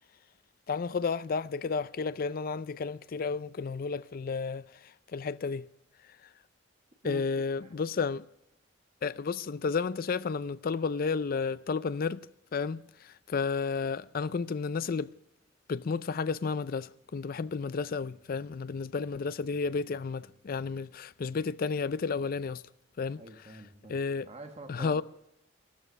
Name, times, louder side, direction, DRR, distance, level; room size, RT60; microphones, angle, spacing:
voice 1, 0.7-4.7 5.1-5.7 7.0-8.3 9.0-12.3 12.5-15.1 15.7-22.6 23.0-23.2 23.9-24.3 24.7-25.0, left 5 dB, 50° left, 0.4 m, -32 dB
voice 2, 7.0-7.7 23.2-24.0 24.2-25.0, right 1 dB, 35° right, 1.4 m, -46 dB
13.5 x 12.5 x 6.2 m
head